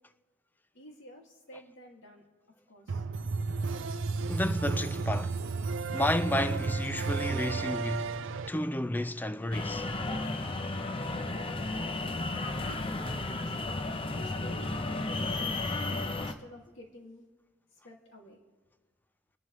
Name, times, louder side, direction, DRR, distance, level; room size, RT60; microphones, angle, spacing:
voice 1, 0.7-2.3 2.7-3.0 12.5-13.8 14.1-17.2 17.7-18.4, left 1 dB, 65° left, 2.3 m, -51 dB
sound 1, 2.9-8.5, right 4 dB, 65° right, 0.5 m, -32 dB
voice 2, 4.3-5.4 5.9-8.2 8.5-9.9 10.4-10.5, left 1 dB, 10° left, 0.3 m, -31 dB
sound 2, 9.5-16.3, left 2 dB, 25° left, 0.7 m, -33 dB
29.5 x 11.0 x 3.2 m
head